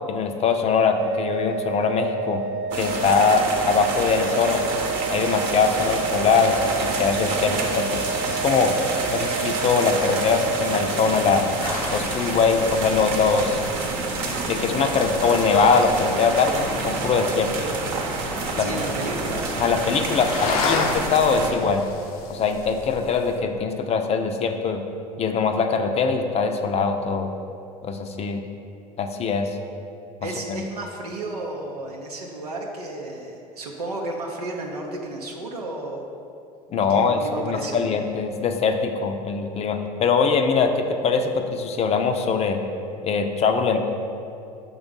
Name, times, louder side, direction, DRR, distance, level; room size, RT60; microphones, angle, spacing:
voice 1, 0.1-2.4 2.7-4.6 5.1-8.7 9.1-11.5 11.9-13.6 14.5-17.5 18.6-18.7 19.6-21.8 22.3-24.8 25.2-27.3 27.8-28.4 29.0-29.5 30.5-30.6 36.7-42.6 43.0-43.8, left 5 dB, 35° left, 6 dB, 0.5 m, -22 dB
Organ, 1.0-11.7, right 5 dB, 30° right, 0.4 m, -30 dB
sound 1, 2.7-21.5, right 3 dB, 55° right, 0.9 m, -28 dB
sound 2, 11.6-23.4, left 4 dB, 70° left, 0.6 m, -33 dB
voice 2, 18.6-19.6 30.2-36.0 36.9-37.9, right 2 dB, 90° right, 0 dB, 0.6 m, -32 dB
5.9 x 3.5 x 5.2 m, 2.6 s
hypercardioid pair, 70°, 19 cm